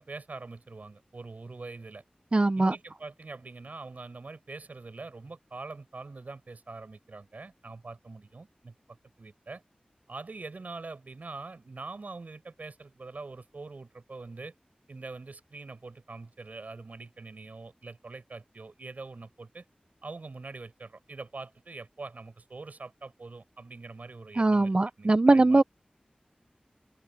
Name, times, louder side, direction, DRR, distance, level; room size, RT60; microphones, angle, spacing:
voice 1, 0.0-2.0 2.6-8.7 9.2-9.6 10.1-14.5 14.9-19.6 20.0-25.6, right 3 dB, 70° right, 7.3 m, -44 dB
voice 2, 2.3-2.7 24.4-25.6, right 2 dB, 40° right, 0.6 m, -21 dB
open air
wide cardioid pair, 65°, 3 cm